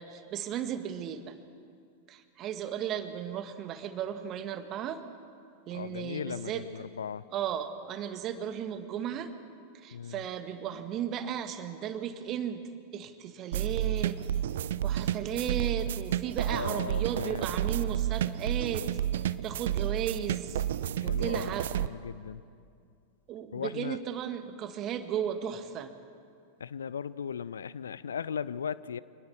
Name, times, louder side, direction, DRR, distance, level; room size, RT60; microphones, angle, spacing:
voice 1, 0.0-1.4 2.1-5.0 5.7-6.6 7.3-9.3 9.8-12.6 12.9-14.2 14.8-18.9 19.4-20.6 21.0-21.7 23.3-25.9, right 9 dB, 35° right, 9 dB, 1.7 m, -35 dB
voice 2, 5.7-7.2 9.9-10.2 16.4-17.5 21.0-22.4 23.5-24.0 26.6-29.0, left 7 dB, 70° left, 18 dB, 0.6 m, -37 dB
sound 1, 13.5-21.9, right 11 dB, 60° right, 0.6 m, -31 dB
25.5 x 20.5 x 7.2 m, 2.4 s
figure-of-eight pair, 90°, 0 cm